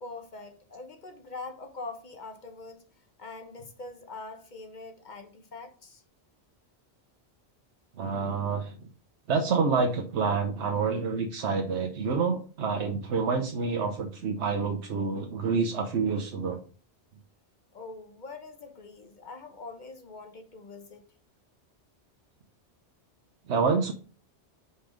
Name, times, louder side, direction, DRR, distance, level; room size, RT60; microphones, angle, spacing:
voice 1, 0.0-6.0 17.7-21.1, left 3 dB, 45° left, 1.2 m, -43 dB
voice 2, 8.0-8.7 9.3-16.6 23.5-23.9, right 5 dB, 85° right, 1.1 m, -28 dB
5.6 x 4.4 x 5.0 m
omnidirectional pair, 1.1 m